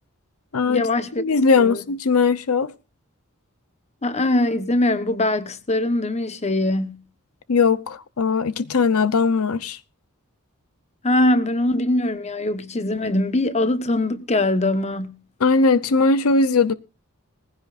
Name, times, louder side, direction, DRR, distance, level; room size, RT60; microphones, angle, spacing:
voice 1, 0.7-1.2 1.6-1.8 4.0-7.0 11.0-15.1, left 1 dB, 30° left, 1.1 m, -22 dB
voice 2, 1.2-2.7 7.5-9.8 15.4-16.7, left 4 dB, 85° left, 0.7 m, -19 dB
19.5 x 15.5 x 2.5 m
head